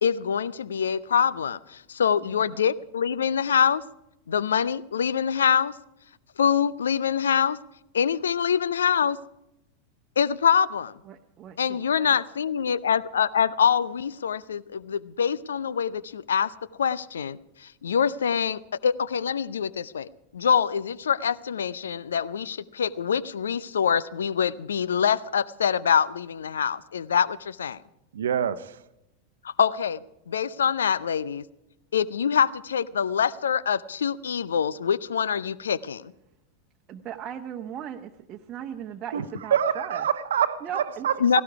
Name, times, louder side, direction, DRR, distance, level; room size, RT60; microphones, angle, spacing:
voice 1, 0.0-3.8 4.3-5.7 6.4-7.6 7.9-9.2 10.2-10.9 11.6-16.5 16.8-27.8 29.4-30.0 30.3-31.4 31.9-36.1 41.2-41.4, left 7 dB, 65° left, 21 dB, 0.5 m, -25 dB
voice 2, 2.2-2.6 11.1-12.1 36.9-40.1 40.6-41.1, right 9 dB, 30° right, 3 dB, 1.0 m, -38 dB
voice 3, 28.1-28.7 39.1-39.2 39.5-41.4, right 8 dB, 65° right, 14 dB, 0.8 m, -26 dB
17.5 x 16.5 x 4.8 m, 0.88 s
figure-of-eight pair, 90°, 0 cm